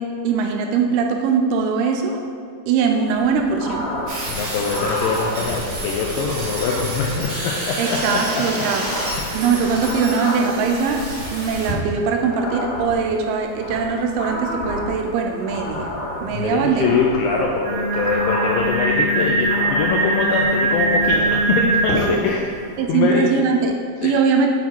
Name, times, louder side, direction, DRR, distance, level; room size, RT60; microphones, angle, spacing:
voice 1, 0.0-2.2 2.7-3.9 7.8-8.9 9.3-15.9 16.2-16.9 22.8-24.5, right 5 dB, 85° right, 3 dB, 2.6 m, -21 dB
sound 1, 3.1-22.9, left 1 dB, 60° left, 2.7 m, -31 dB
sound 2, 4.1-11.7, right 1 dB, 50° right, 1.1 m, -29 dB
voice 2, 4.3-8.4 9.2-9.3 16.3-22.5 22.9-23.3 24.0-24.1, left 5 dB, 80° left, -1 dB, 2.0 m, -23 dB
Singing, 17.6-22.4, right 2 dB, 70° right, 2.4 m, -21 dB
7.2 x 5.8 x 4.6 m, 2.1 s
omnidirectional pair, 4.5 m